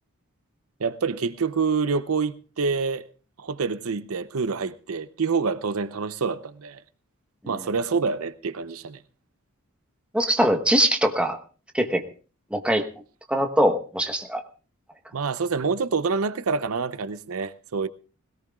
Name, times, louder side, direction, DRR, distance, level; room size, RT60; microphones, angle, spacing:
voice 1, 0.8-3.1 3.4-6.8 7.5-9.0 15.1-17.9, right 5 dB, 80° right, 0.7 m, -27 dB
voice 2, 10.1-11.4 11.7-12.0 12.5-12.8 13.3-14.4, equal, 5° right, 1.2 m, -22 dB
20.5 x 17.5 x 2.4 m
head